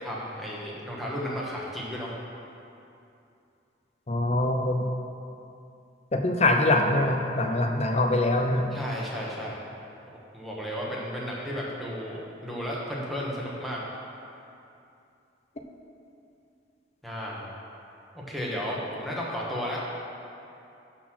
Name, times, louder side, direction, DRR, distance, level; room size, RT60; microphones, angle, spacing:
voice 1, 0.0-2.1 8.7-9.6 10.3-13.8 17.0-17.5 18.1-19.8, equal, ahead, -5 dB, 1.3 m, -33 dB
voice 2, 4.1-4.8 6.1-8.7, left 2 dB, 35° left, 4 dB, 0.7 m, -24 dB
12.0 x 4.2 x 6.2 m, 2.7 s
head